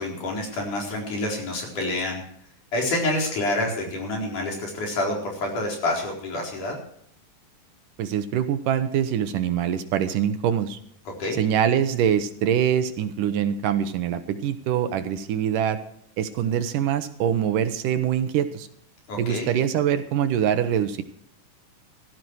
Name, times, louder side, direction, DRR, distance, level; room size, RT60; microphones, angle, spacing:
voice 1, 0.0-2.2 2.7-6.8 11.1-11.4 19.1-19.5, left 2 dB, 60° left, 0 dB, 5.9 m, -28 dB
voice 2, 8.0-10.8 11.4-15.8 16.2-18.7 19.2-21.0, right 9 dB, 75° right, 10 dB, 2.5 m, -24 dB
17.0 x 14.0 x 4.7 m, 0.66 s
omnidirectional pair, 4.0 m